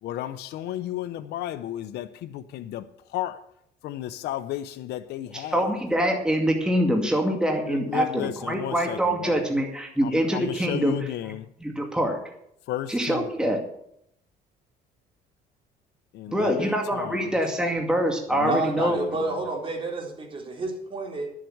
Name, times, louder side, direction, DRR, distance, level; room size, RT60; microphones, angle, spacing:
voice 1, 0.0-3.5 3.8-5.7 7.6-9.4 10.0-11.5 12.7-13.5 16.1-17.3 18.3-19.4, left 13 dB, 75° left, 0.8 m, -34 dB
voice 2, 5.3-11.0 11.6-12.2 12.9-13.6 16.3-19.0, equal, 5° right, 2.3 m, -25 dB
voice 3, 18.5-21.3, right 3 dB, 30° right, 3.7 m, -30 dB
12.0 x 7.6 x 7.8 m
cardioid pair, 110°, 17 cm